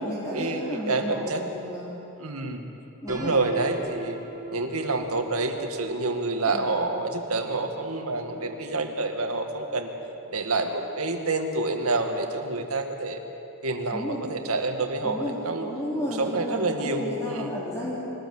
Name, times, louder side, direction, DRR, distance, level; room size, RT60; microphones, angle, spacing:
voice 1, 0.0-1.9 3.0-3.4 6.5-6.7 13.9-14.2 15.0-18.0, equal, 15° left, -8 dB, 3.6 m, -32 dB
voice 2, 0.9-1.4 2.2-2.6 3.1-4.2 4.5-9.9 10.3-13.2 13.6-15.7 16.0-17.5, right 3 dB, 85° right, 4 dB, 2.2 m, -28 dB
Piano, 3.1-8.9, right 3 dB, 15° right, 4.4 m, -42 dB
24.0 x 19.5 x 8.1 m, 3.0 s
head